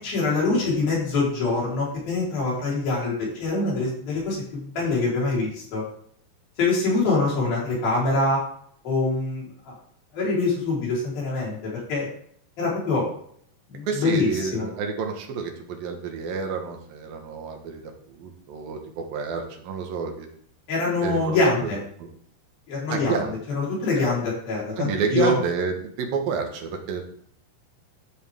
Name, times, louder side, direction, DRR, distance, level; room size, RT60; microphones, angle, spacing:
voice 1, 0.0-5.8 6.6-8.4 8.8-9.7 10.1-12.1 12.6-13.1 13.7-14.7 20.7-21.8 22.7-23.2 23.5-25.4, left 3 dB, 85° left, -5 dB, 6.2 m, -24 dB
voice 2, 13.9-17.8 18.1-20.3 21.0-21.4 21.6-21.7 22.0-22.1 22.9-23.3 24.0-24.1 24.8-27.0, right 6 dB, 80° right, 3 dB, 3.3 m, -29 dB
13.0 x 7.4 x 3.7 m, 0.63 s
omnidirectional pair, 4.1 m